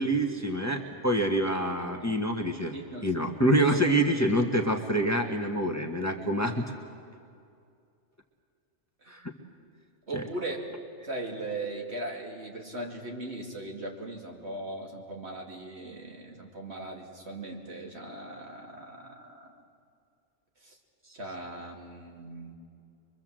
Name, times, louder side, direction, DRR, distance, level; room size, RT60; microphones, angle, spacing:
voice 1, 0.0-2.7 3.0-6.6 9.1-9.2 10.1-10.2, right 1 dB, 15° left, 2 dB, 1.4 m, -26 dB
voice 2, 2.7-3.2 9.0-9.1 10.1-10.7 11.0-19.5 20.6-20.8 21.1-22.6, right 2 dB, 65° right, 0 dB, 2.8 m, -39 dB
24.0 x 24.0 x 7.6 m, 2.4 s
omnidirectional pair, 1.2 m